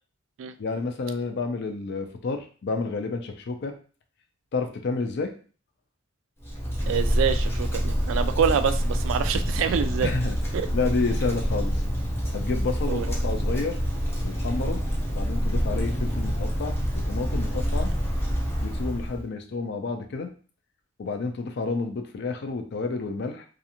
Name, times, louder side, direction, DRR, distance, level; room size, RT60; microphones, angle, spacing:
voice 1, 0.6-3.7 4.5-5.3 8.3-8.6 10.0-10.4 10.7-11.8 12.3-13.8 14.2-14.8 15.1-17.9 18.6-20.3 21.0-23.5, left 3 dB, 60° left, 6 dB, 0.4 m, -30 dB
Wind, 6.4-19.2, equal, 15° left, 0.7 m, -27 dB
voice 2, 6.9-10.1 10.5-10.7 12.9-13.1, right 7 dB, 75° right, 10 dB, 0.3 m, -26 dB
2.5 x 2.4 x 2.8 m, 0.40 s
head